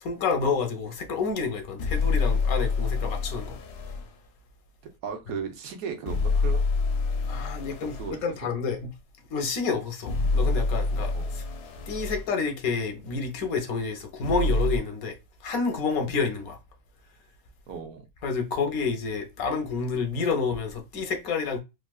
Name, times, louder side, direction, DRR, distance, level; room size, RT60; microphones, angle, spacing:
voice 1, 0.0-3.6 7.3-8.9 9.3-11.4 11.9-15.1 15.4-16.6 18.2-21.6, left 5 dB, 85° left, 1.2 m, -29 dB
sound 1, 1.8-4.1 6.1-8.1 10.1-12.2 14.2-14.8, left 3 dB, 65° left, 0.8 m, -26 dB
voice 2, 4.8-6.6 7.8-8.2 9.7-9.8 11.1-11.4 16.0-16.2 17.7-18.1, right 6 dB, 80° right, 1.2 m, -36 dB
3.6 x 2.5 x 2.3 m
omnidirectional pair, 1.5 m